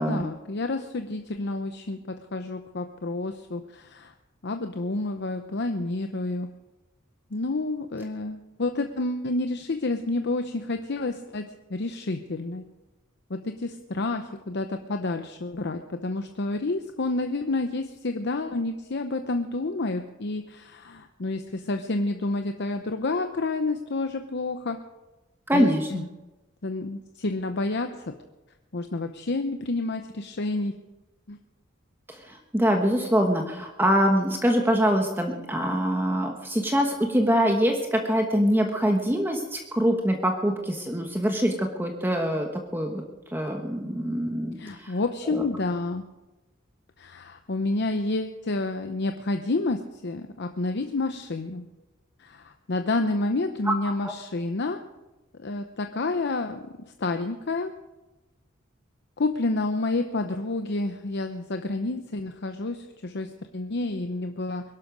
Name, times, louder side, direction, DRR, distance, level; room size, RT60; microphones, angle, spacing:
voice 1, 0.0-4.1 4.4-6.5 7.3-12.6 13.3-24.8 25.5-26.0 26.6-28.2 28.7-30.7 31.3-31.4 44.6-46.0 47.0-51.6 52.2-54.8 55.4-56.6 57.0-57.7 59.2-64.6, left 2 dB, 60° left, 7 dB, 0.8 m, -29 dB
voice 2, 25.5-26.0 32.1-43.0 43.3-44.9 45.3-45.4 53.6-53.7 54.0-54.1, equal, 10° right, 2 dB, 1.2 m, -24 dB
22.0 x 11.5 x 5.2 m, 1.1 s
head